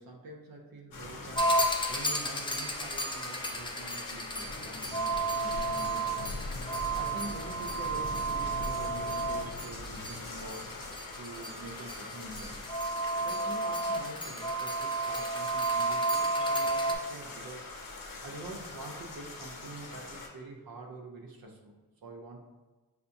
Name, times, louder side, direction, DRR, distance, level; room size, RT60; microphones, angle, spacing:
voice 1, 0.0-1.6 1.9-6.3 7.0-10.7 11.2-12.6 13.1-17.7 18.2-22.4, right 2 dB, 75° right, 0 dB, 0.7 m, -46 dB
sound 1, 0.9-20.3, left 2 dB, 65° left, 0.7 m, -42 dB
sound 2, 1.4-17.0, right 2 dB, 15° left, 0.3 m, -32 dB
5.6 x 2.1 x 2.6 m, 1.2 s
wide cardioid pair, 120°, 36 cm